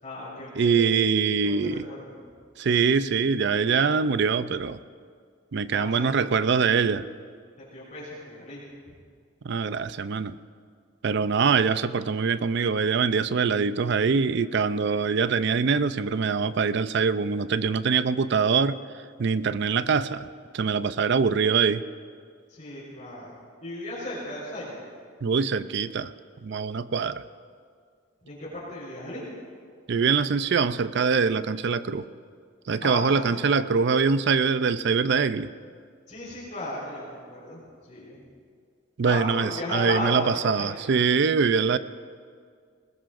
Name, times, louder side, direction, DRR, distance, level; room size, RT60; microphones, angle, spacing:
voice 1, 0.0-0.9 1.4-2.1 5.7-6.1 7.6-8.9 22.5-24.8 28.2-29.2 32.8-33.4 36.1-38.2 39.0-40.7, left 1 dB, 40° left, -7 dB, 4.6 m, -35 dB
voice 2, 0.6-1.9 2.6-4.8 5.5-7.1 9.4-10.4 11.0-18.8 19.2-20.3 20.5-21.8 25.2-26.1 26.4-27.2 29.9-32.1 32.7-35.5 39.0-41.8, right 5 dB, 60° right, 14 dB, 0.5 m, -23 dB
21.0 x 20.0 x 2.6 m, 2.1 s
head